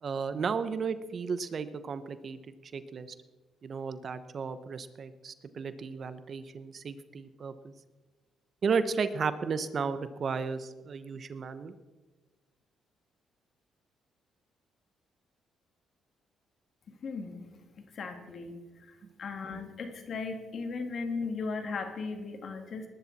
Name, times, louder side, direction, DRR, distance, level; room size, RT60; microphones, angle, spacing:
voice 1, 0.0-3.1 3.6-7.7 8.6-11.7, right 5 dB, 50° right, 12 dB, 1.0 m, -34 dB
voice 2, 16.9-17.5 17.8-18.6 19.2-22.9, left 4 dB, 55° left, 5 dB, 2.4 m, -37 dB
20.0 x 12.0 x 4.2 m, 1.2 s
cardioid pair, 90°, 0 cm